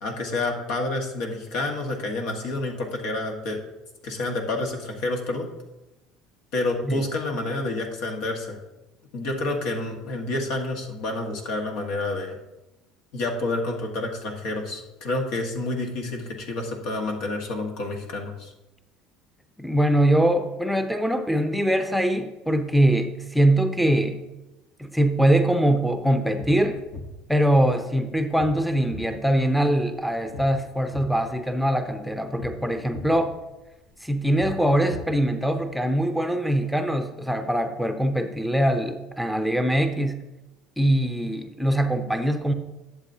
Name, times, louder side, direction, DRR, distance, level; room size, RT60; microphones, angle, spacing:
voice 1, 0.0-3.6 4.0-5.5 6.5-8.6 9.1-12.4 13.1-18.5, left 2 dB, 70° left, 2 dB, 1.5 m, -29 dB
voice 2, 19.6-24.2 24.8-26.8 27.3-33.3 34.0-40.2 40.8-42.5, right 1 dB, ahead, 6 dB, 0.7 m, -22 dB
sound 1, 26.4-35.8, left 2 dB, 50° left, 1.2 m, -43 dB
11.0 x 7.3 x 2.8 m, 1.0 s
supercardioid pair, 90°, 0 cm